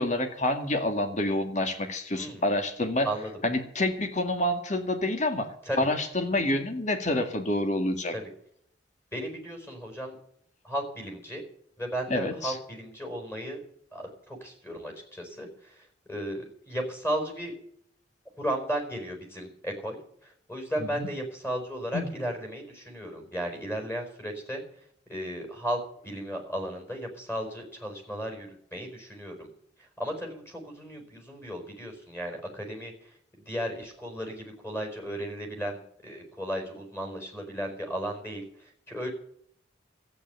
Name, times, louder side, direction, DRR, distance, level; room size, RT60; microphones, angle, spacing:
voice 1, 0.0-3.1 3.4-5.5 5.8-8.1 12.1-12.6 21.0-21.1 21.9-22.1, left 1 dB, 40° left, 6 dB, 2.0 m, -27 dB
voice 2, 2.1-2.4 3.0-3.3 5.6-5.8 8.1-8.2 9.1-10.2 10.6-11.4 11.8-13.6 13.9-17.5 18.4-24.6 25.1-29.5 29.8-39.1, equal, 15° left, 0 dB, 4.8 m, -35 dB
13.5 x 9.2 x 8.1 m, 0.66 s
head